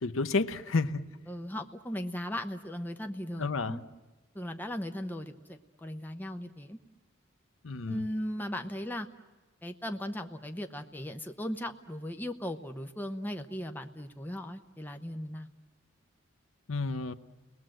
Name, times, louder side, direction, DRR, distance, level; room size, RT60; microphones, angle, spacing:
voice 1, 0.0-1.1 3.4-3.8 7.6-8.0 16.7-17.1, left 3 dB, 80° left, 12 dB, 0.8 m, -30 dB
voice 2, 1.3-3.8 4.3-6.8 7.9-9.1 9.6-15.5, left 1 dB, 10° left, 5 dB, 0.8 m, -37 dB
30.0 x 19.5 x 7.7 m, 1.2 s
head